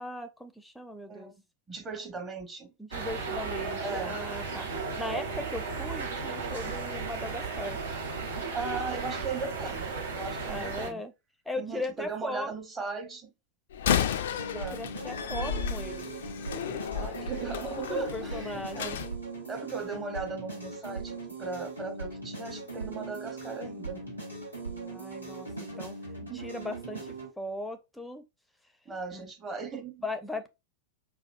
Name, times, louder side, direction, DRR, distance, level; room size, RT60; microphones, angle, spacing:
voice 1, 0.0-1.3 2.8-7.8 10.5-11.1 11.5-12.5 14.5-16.1 16.5-16.8 17.9-19.0 24.7-26.0 26.3-28.2 29.1-29.2 30.0-30.5, left 1 dB, 5° left, 0.5 m, -38 dB
voice 2, 1.1-1.4 1.7-2.7 3.8-4.2 8.5-11.0 11.5-13.3 14.5-14.8 16.9-19.0 19.5-24.1 26.2-26.5 28.9-30.0, right 4 dB, 20° right, 0.9 m, -38 dB
sound 1, 2.9-10.9, right 4 dB, 70° right, 1.1 m, -35 dB
Slam, 13.7-19.1, left 8 dB, 60° left, 0.3 m, -32 dB
sound 2, 14.4-27.3, right 3 dB, 90° right, 1.3 m, -40 dB
4.9 x 2.3 x 2.5 m
figure-of-eight pair, 90°, 0 cm